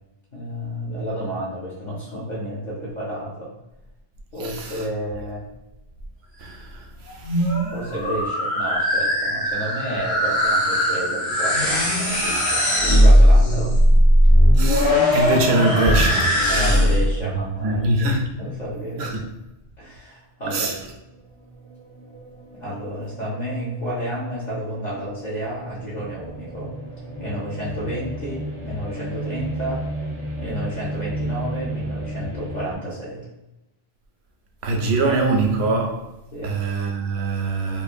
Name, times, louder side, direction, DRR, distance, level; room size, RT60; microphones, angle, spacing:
voice 1, 0.3-3.6 4.3-5.5 7.7-13.8 16.5-18.1 18.4-19.3 19.8-20.8 22.5-26.7 27.1-29.8 30.4-33.2 36.3-36.5, equal, 50° left, 0.8 m, -31 dB
voice 2, 4.4-4.8 6.4-7.5 14.6-16.9 17.6-18.3 19.0-19.1 20.5-20.7 34.6-36.1 36.4-37.8, right 3 dB, 85° right, 0.8 m, -23 dB
sound 1, 7.1-17.1, equal, 90° left, 1.1 m, -18 dB
sound 2, 20.8-32.8, right 1 dB, 40° right, 0.5 m, -33 dB
3.1 x 2.0 x 2.4 m
omnidirectional pair, 1.1 m